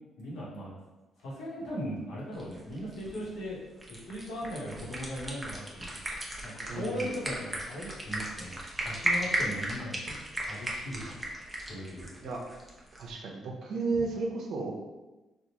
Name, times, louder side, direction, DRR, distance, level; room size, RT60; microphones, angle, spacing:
voice 1, 0.2-0.7 1.2-3.6 3.9-5.9 6.4-10.1 10.5-11.2 11.7-12.1, equal, 80° left, -6 dB, 1.2 m, -38 dB
sound 1, 2.3-13.1, right 1 dB, 15° right, 0.7 m, -36 dB
voice 2, 6.7-7.1 12.2-12.4 13.0-14.7, right 3 dB, 70° right, 0 dB, 0.7 m, -33 dB
3.5 x 2.5 x 2.9 m, 1.1 s
cardioid pair, 90°, 0 cm